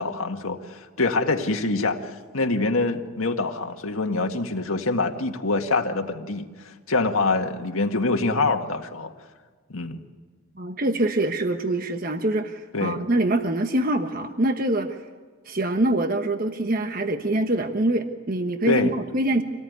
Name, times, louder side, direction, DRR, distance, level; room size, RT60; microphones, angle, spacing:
voice 1, 0.0-9.1 9.7-10.0 12.7-13.0 18.7-18.9, left 3 dB, 80° left, 4 dB, 1.8 m, -25 dB
voice 2, 10.6-15.0 15.4-19.4, right 1 dB, 40° right, 6 dB, 1.2 m, -24 dB
26.0 x 18.5 x 9.5 m, 1.4 s
head